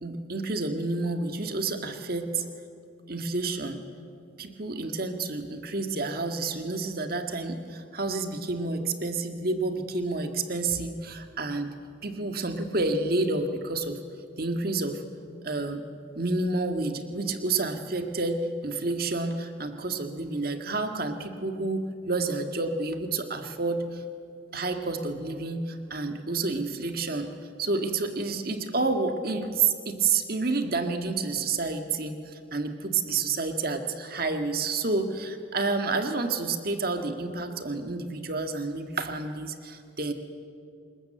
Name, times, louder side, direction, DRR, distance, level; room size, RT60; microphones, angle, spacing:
voice 1, 0.0-2.5 3.1-3.8 4.4-11.7 12.0-14.0 14.4-15.0 15.4-15.8 16.1-24.0 24.5-27.3 27.6-40.1, right 3 dB, 50° right, 6 dB, 1.7 m, -29 dB
27.0 x 20.5 x 7.8 m, 2.4 s
head